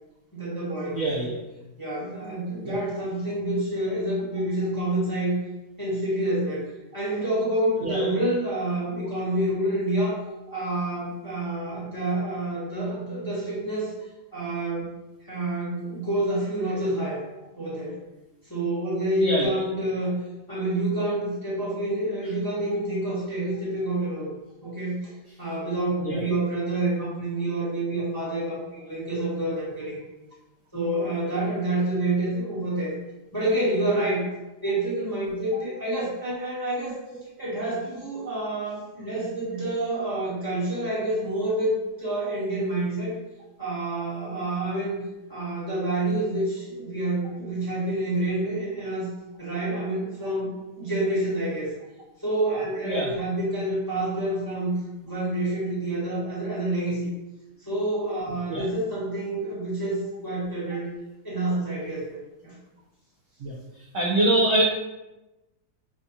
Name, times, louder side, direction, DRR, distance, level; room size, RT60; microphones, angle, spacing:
voice 1, 0.3-1.2 1.8-5.4 5.8-6.6 6.9-10.2 10.5-13.9 14.3-14.9 15.2-17.2 17.6-18.0 18.4-20.2 20.5-24.3 24.6-25.1 25.4-30.0 30.7-32.9 33.3-34.3 34.6-37.0 37.4-41.7 42.0-43.2 43.6-45.0 45.3-49.1 49.4-51.7 52.2-54.7 55.0-57.1 57.7-60.9 61.2-62.2 62.4-62.5, right 1 dB, 15° left, -9 dB, 0.8 m, -28 dB
voice 2, 0.9-1.4 2.6-2.8 7.8-8.1 19.2-19.6 26.0-26.3 35.5-35.6 52.8-53.1 58.5-58.6 63.4-63.6 63.9-64.7, right 1 dB, 70° right, -3 dB, 0.7 m, -24 dB
6.2 x 2.3 x 2.7 m, 1.0 s
omnidirectional pair, 2.1 m